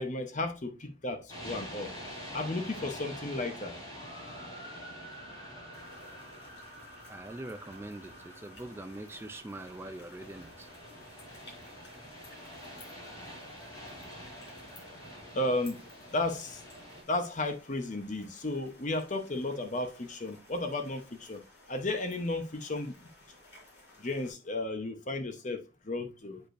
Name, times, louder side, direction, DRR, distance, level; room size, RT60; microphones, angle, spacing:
voice 1, 0.0-1.9 2.3-3.8 15.3-15.8 16.1-16.6 17.1-21.4 21.7-22.9 24.0-26.4, left 2 dB, 35° left, 0.9 m, -34 dB
sound 1, 1.3-17.0, equal, 20° left, 2.9 m, -46 dB
sound 2, 5.7-24.3, left 2 dB, 55° left, 4.0 m, -57 dB
voice 2, 7.1-10.7, right 1 dB, 10° right, 0.4 m, -43 dB
8.4 x 5.2 x 2.6 m
head